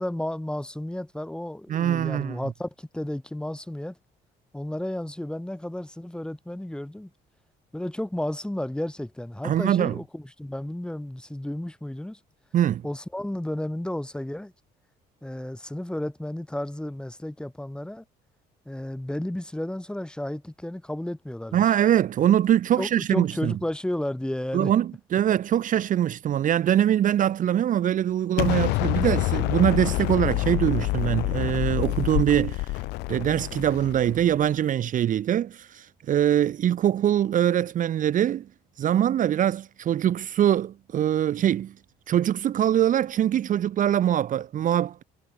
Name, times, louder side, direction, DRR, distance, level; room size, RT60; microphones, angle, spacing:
voice 1, 0.0-4.0 4.5-7.1 7.7-12.2 12.8-14.5 15.2-18.0 18.7-21.6 22.8-24.7, left 1 dB, 5° left, 4.5 m, -32 dB
voice 2, 1.7-2.4 9.4-10.0 12.5-12.8 21.5-23.5 24.5-32.7 33.1-38.5 38.8-41.7 42.1-45.0, right 10 dB, 50° right, 1.0 m, -23 dB
Explosion, 28.4-34.4, left 22 dB, 90° left, 0.6 m, -27 dB
cardioid pair, 110°, 17 cm